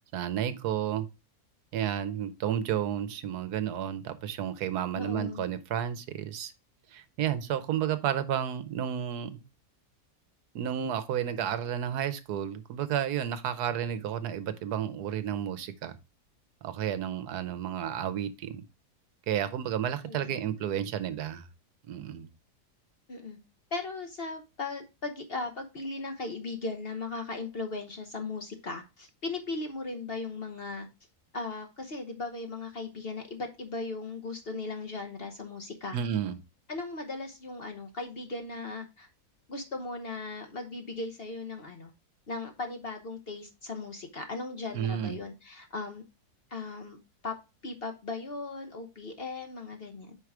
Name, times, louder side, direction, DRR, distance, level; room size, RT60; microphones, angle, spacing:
voice 1, 0.1-1.1 1.7-6.5 6.9-9.4 10.5-16.0 16.6-18.6 19.3-21.5 21.9-22.3 35.9-36.4 44.7-45.2, right 9 dB, 75° right, 1.2 m, -31 dB
voice 2, 4.9-5.4 20.1-20.5 23.1-23.4 23.7-30.9 31.3-36.0 36.7-39.1 39.5-41.9 42.3-46.0 46.5-47.0 47.2-47.4 47.6-50.2, left 3 dB, 45° left, 0.9 m, -37 dB
5.5 x 4.7 x 4.7 m
omnidirectional pair, 1.7 m